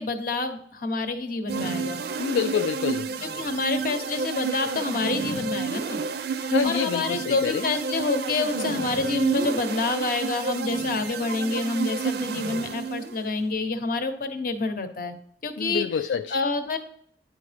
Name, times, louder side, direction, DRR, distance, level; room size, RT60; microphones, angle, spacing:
voice 1, 0.0-2.0 3.2-6.0 6.4-15.1 15.4-15.9 16.3-16.8, left 3 dB, 55° left, 8 dB, 0.8 m, -28 dB
sound 1, 1.5-13.3, right 5 dB, 60° right, 0.4 m, -30 dB
voice 2, 2.2-3.1 6.5-7.7 15.6-16.4, left 6 dB, 85° left, 8 dB, 0.3 m, -27 dB
9.5 x 4.7 x 3.3 m, 0.67 s
head